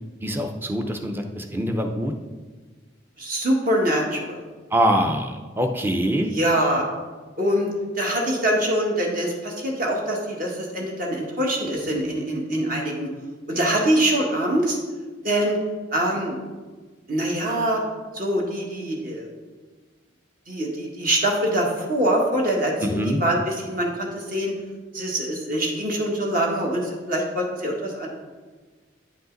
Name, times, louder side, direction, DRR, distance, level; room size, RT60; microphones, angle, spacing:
voice 1, 0.2-2.1 4.7-6.3 22.8-23.2, equal, 10° right, 4 dB, 0.5 m, -24 dB
voice 2, 3.2-4.4 6.3-6.8 7.4-7.7 7.9-13.1 13.5-14.8 15.2-15.6 15.9-16.4 17.1-17.8 18.1-19.3 20.5-24.5 24.9-28.1, right 1 dB, 45° right, -1 dB, 1.5 m, -24 dB
9.7 x 5.3 x 3.9 m, 1.4 s
head